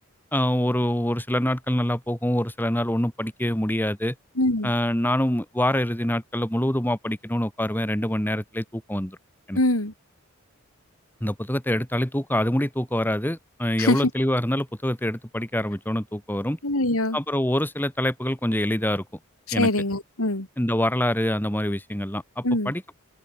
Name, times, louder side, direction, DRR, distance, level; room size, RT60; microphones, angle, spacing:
voice 1, 0.3-4.1 4.6-9.2 9.5-9.6 11.2-16.6 17.1-19.0 19.5-19.7 20.6-23.0, left 1 dB, 10° left, 2.4 m, -25 dB
voice 2, 4.4-4.7 9.5-9.9 13.8-14.0 16.6-17.2 19.5-20.5 22.4-22.7, left 1 dB, 90° left, 4.4 m, -23 dB
open air
head